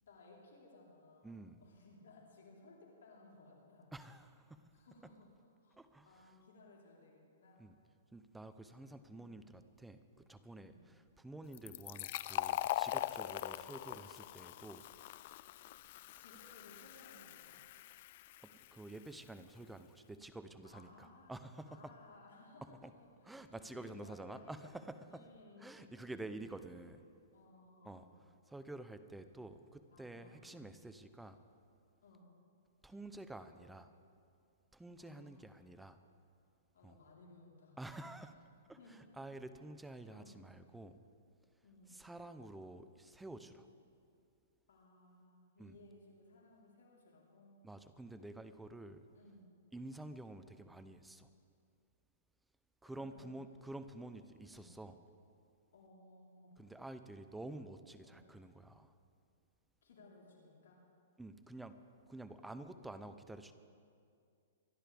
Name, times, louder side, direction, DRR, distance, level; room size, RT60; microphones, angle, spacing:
voice 1, 0.0-3.9 4.7-5.8 6.1-7.7 9.1-9.3 10.6-10.9 16.1-17.6 20.6-21.4 21.7-23.1 23.4-24.7 25.1-26.4 27.3-28.2 29.9-30.7 32.0-32.3 35.0-35.5 36.7-37.8 38.1-38.2 38.8-39.0 40.1-40.5 41.6-42.0 44.7-47.6 49.1-49.5 52.9-53.4 54.5-54.8 55.7-56.6 58.0-58.3 59.8-60.8 62.6-62.8, left 2 dB, 75° left, -3 dB, 3.9 m, -61 dB
voice 2, 1.2-1.6 3.9-4.6 5.8-6.2 7.6-7.7 8.1-14.9 16.2-16.3 18.4-21.9 22.6-22.9 23.2-25.2 25.6-27.0 27.8-28.1 28.5-31.4 32.8-33.9 34.7-36.0 36.8-37.0 37.8-38.3 38.7-41.0 41.9-43.7 45.6-45.8 47.6-49.0 49.7-51.3 52.8-54.9 56.6-58.9 61.2-61.8 62.1-63.5, right 2 dB, 5° right, 11 dB, 0.7 m, -50 dB
Fill (with liquid), 11.5-18.9, left 15 dB, 50° left, 0.3 m, -42 dB
24.5 x 11.0 x 3.5 m, 2.4 s
hypercardioid pair, 135°, 0 cm